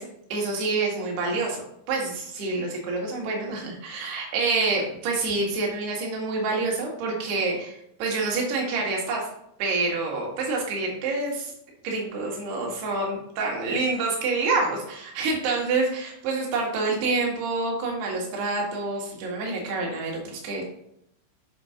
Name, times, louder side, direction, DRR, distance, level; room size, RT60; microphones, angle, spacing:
voice 1, 0.0-9.3 9.6-11.5 11.8-20.6, right 3 dB, 65° right, -1 dB, 3.4 m, -27 dB
7.7 x 4.3 x 5.7 m, 0.75 s
omnidirectional pair, 5.5 m